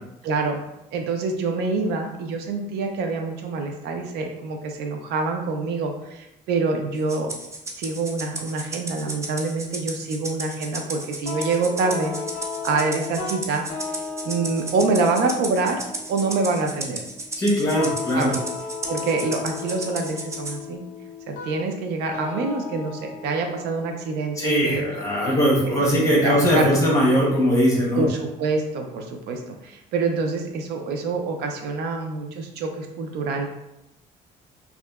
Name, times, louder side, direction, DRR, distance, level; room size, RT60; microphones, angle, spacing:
voice 1, 0.2-0.6 0.9-7.3 7.7-12.1 12.6-13.6 14.2-15.8 16.1-17.0 18.1-18.4 18.9-20.8 21.3-24.8 25.6-25.9 26.2-26.8 27.9-33.5, right 3 dB, 80° right, 4 dB, 0.4 m, -26 dB
Rattle (instrument), 7.1-20.6, right 2 dB, 15° right, 0.4 m, -34 dB
sound 1, 11.3-26.2, left 5 dB, 50° left, 0.5 m, -36 dB
voice 2, 17.4-18.3 24.4-28.0, equal, 20° left, -4 dB, 1.0 m, -20 dB
2.6 x 2.3 x 2.3 m, 0.87 s
cardioid pair, 110°, 17 cm